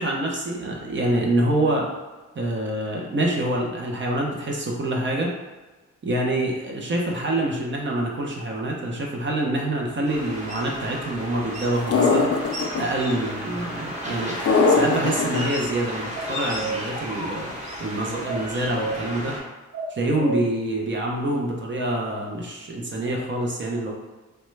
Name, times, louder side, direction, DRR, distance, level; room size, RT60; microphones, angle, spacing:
voice 1, 0.0-1.9 2.4-5.3 6.0-12.3 12.8-14.4 14.7-17.5 17.8-19.4 19.9-23.9, right 1 dB, 40° right, -1 dB, 0.5 m, -26 dB
sound 1, 10.0-19.4, equal, 20° right, 1.0 m, -33 dB
sound 2, 11.9-12.8 14.5-15.4, left 4 dB, 50° left, 0.4 m, -19 dB
sound 3, 16.1-16.7 18.2-18.9 19.7-20.4, right 3 dB, 80° right, 0.9 m, -31 dB
3.1 x 2.2 x 3.1 m, 1.2 s
wide cardioid pair, 115°, 31 cm